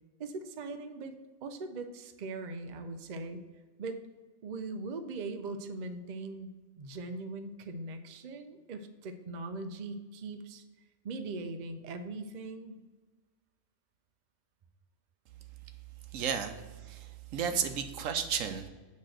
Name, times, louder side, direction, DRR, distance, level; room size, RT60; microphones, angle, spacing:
voice 1, 0.2-1.1 1.4-3.4 3.8-4.0 4.4-6.5 6.8-10.6 11.0-12.8, right 3 dB, 50° right, 7 dB, 0.5 m, -40 dB
voice 2, 16.1-18.7, right 7 dB, 80° right, 8 dB, 1.0 m, -33 dB
8.3 x 3.1 x 6.2 m, 1.3 s
omnidirectional pair, 1.4 m